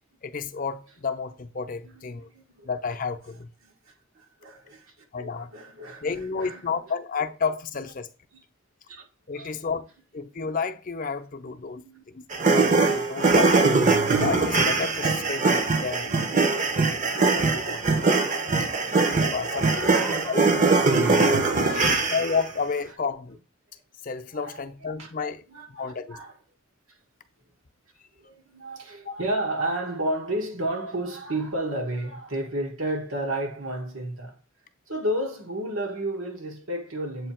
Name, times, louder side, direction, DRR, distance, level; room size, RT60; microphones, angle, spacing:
voice 1, 0.2-2.3 2.6-3.5 5.1-5.5 6.0-8.1 9.3-9.9 10.1-13.5 14.2-16.1 16.5-16.7 17.0-18.1 19.1-20.7 21.0-21.3 22.1-23.4 24.0-25.4 25.8-26.2 29.1-29.2, left 5 dB, 45° left, 0.6 m, -31 dB
voice 2, 1.9-2.7 3.6-4.9 5.2-6.7 8.9-9.0 9.3-9.7 11.8-12.0 13.0-13.7 16.0-16.8 18.9-22.1 24.4-24.6 25.0-25.1 25.5-26.3 26.9-27.0 28.2-34.4 34.9-37.3, right 1 dB, 90° right, 1.5 m, -33 dB
sound 1, 12.3-22.5, right 3 dB, 40° right, 0.7 m, -22 dB
7.8 x 2.8 x 4.3 m
head